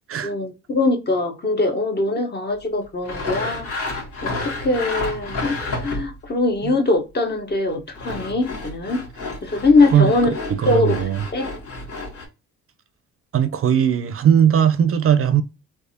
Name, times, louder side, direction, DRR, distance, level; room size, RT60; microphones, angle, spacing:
voice 1, 0.2-3.7 4.2-9.0 9.4-10.3 10.6-11.5, left 2 dB, 35° left, 0.9 m, -22 dB
Sawing, 3.0-6.3 7.7-12.3, left 2 dB, 80° left, 1.7 m, -30 dB
voice 2, 9.9-11.2 13.3-15.4, right 9 dB, 45° right, 0.5 m, -18 dB
3.4 x 3.2 x 2.6 m
cardioid pair, 90°, 30 cm